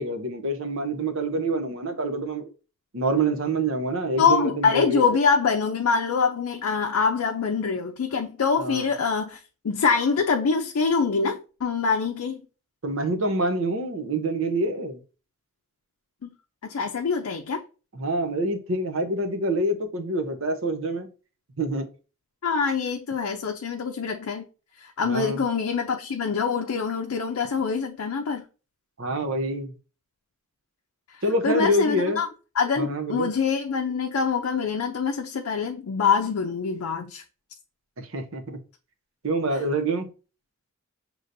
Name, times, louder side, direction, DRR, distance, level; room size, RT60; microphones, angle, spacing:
voice 1, 0.0-2.5 2.9-5.0 8.6-8.9 12.8-15.0 17.9-21.1 21.6-21.9 25.1-25.4 29.0-29.7 31.2-32.2 32.8-33.3 38.0-38.6 39.2-40.1, right 2 dB, 60° right, 0.7 m, -26 dB
voice 2, 4.2-9.4 9.6-12.4 16.2-16.3 16.6-17.6 22.4-24.5 24.8-28.4 31.1-32.3 32.6-37.2, left 5 dB, 80° left, 0.5 m, -25 dB
6.5 x 3.0 x 2.6 m
head